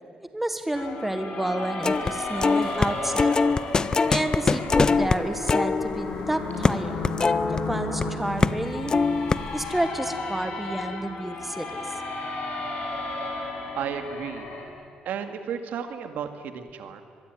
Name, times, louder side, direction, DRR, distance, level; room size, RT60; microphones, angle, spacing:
voice 1, 0.2-3.4 4.1-6.9 7.5-8.9 9.5-11.8, right 1 dB, 5° right, 8 dB, 1.6 m, -30 dB
sound 1, 0.7-14.6, left 2 dB, 85° left, 6.6 m, -33 dB
sound 2, 1.8-2.1 2.4-8.0 8.4-8.6 8.9-9.7, left 4 dB, 25° left, 0.6 m, -23 dB
voice 2, 13.7-14.5 15.0-17.0, right 7 dB, 80° right, 7 dB, 2.2 m, -33 dB
24.0 x 22.5 x 9.5 m, 2.3 s
cardioid pair, 145°, 3 cm